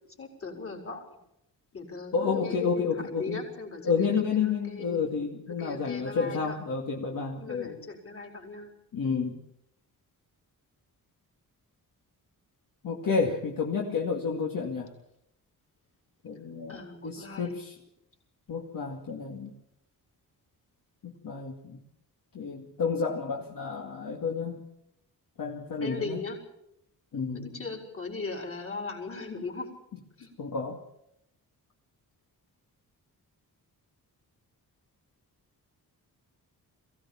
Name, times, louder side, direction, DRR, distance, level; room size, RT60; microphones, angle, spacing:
voice 1, 0.2-1.1 1.7-2.9 3.2-5.0 5.6-6.6 7.4-8.7 16.7-17.5 25.8-26.4 27.3-29.7 30.2-30.3, left 3 dB, 35° left, 2 dB, 4.6 m, -38 dB
voice 2, 2.1-3.4 3.8-7.7 8.9-9.4 12.8-14.9 16.2-17.7 18.5-19.5 21.0-21.8 22.3-24.6 25.4-26.2 27.1-27.5 30.4-30.8, left 5 dB, 60° left, -1 dB, 2.3 m, -30 dB
22.5 x 16.5 x 7.3 m, 0.79 s
wide cardioid pair, 160°, 37 cm